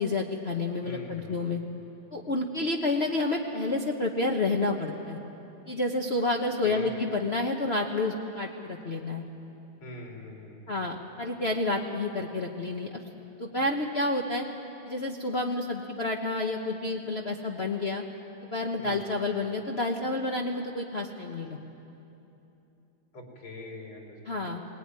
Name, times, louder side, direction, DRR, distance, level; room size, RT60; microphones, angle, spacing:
voice 1, 0.0-1.6 2.1-5.2 5.7-9.2 10.7-12.9 13.4-14.4 14.9-18.0 18.5-21.6 24.3-24.6, left 2 dB, 40° left, 1 dB, 1.1 m, -29 dB
voice 2, 0.8-1.4 6.6-7.0 9.8-10.6 18.8-19.0 23.1-24.7, left 1 dB, 80° left, -1 dB, 4.4 m, -43 dB
20.5 x 19.0 x 9.6 m, 2.9 s
omnidirectional pair, 2.3 m